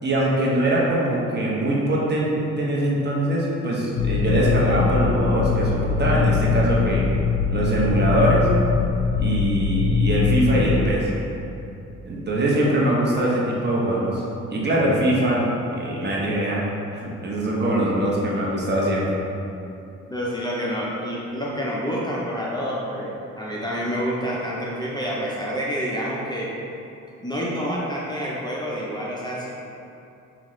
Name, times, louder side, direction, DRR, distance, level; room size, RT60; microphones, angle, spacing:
voice 1, 0.0-7.1 7.5-8.5 9.2-11.1 12.1-14.2 14.5-16.7 16.9-19.1, right 1 dB, 35° right, -5 dB, 0.9 m, -22 dB
sound 1, 4.0-10.9, left 5 dB, 85° left, 0.5 m, -22 dB
voice 2, 20.1-26.5 27.2-29.5, equal, 15° left, -6 dB, 0.6 m, -28 dB
5.5 x 2.4 x 3.1 m, 2.7 s
cardioid pair, 90°, 30 cm